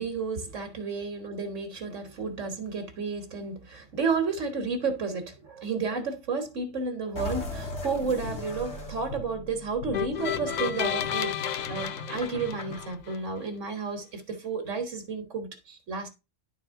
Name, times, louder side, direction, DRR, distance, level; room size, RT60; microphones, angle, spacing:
voice 1, 0.0-16.1, right 4 dB, 70° right, 1.7 m, -32 dB
sound 1, 7.1-12.9, left 1 dB, 60° left, 2.1 m, -38 dB
sound 2, 9.9-13.2, left 10 dB, 80° left, 0.4 m, -32 dB
10.5 x 4.3 x 3.6 m
omnidirectional pair, 1.3 m